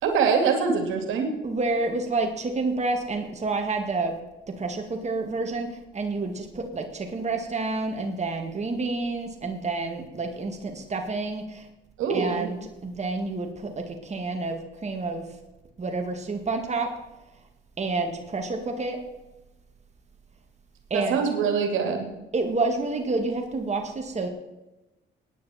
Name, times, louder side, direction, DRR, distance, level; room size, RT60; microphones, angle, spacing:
voice 1, 0.0-1.3 12.0-12.5 20.9-22.1, right 5 dB, 90° right, 4 dB, 2.5 m, -24 dB
voice 2, 1.4-4.1 4.5-11.6 12.1-15.2 15.8-16.9 17.8-19.0 20.9-21.2 22.3-24.3, right 3 dB, 35° right, 3 dB, 2.2 m, -29 dB
17.0 x 9.8 x 4.4 m, 1.0 s
cardioid pair, 90°, 20 cm